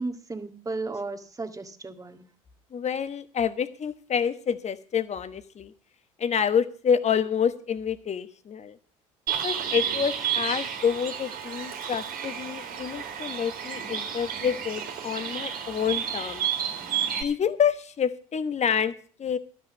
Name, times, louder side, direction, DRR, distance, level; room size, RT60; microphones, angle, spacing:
voice 1, 0.0-2.3, right 3 dB, 20° right, 6 dB, 1.8 m, -34 dB
voice 2, 2.7-5.7 6.2-8.8 9.4-16.5 17.2-18.9 19.2-19.4, left 7 dB, 40° left, 12 dB, 1.2 m, -28 dB
Bird, 9.3-17.2, right 8 dB, 55° right, 2.4 m, -31 dB
12.5 x 6.2 x 8.2 m, 0.43 s
hypercardioid pair, 60°, 18 cm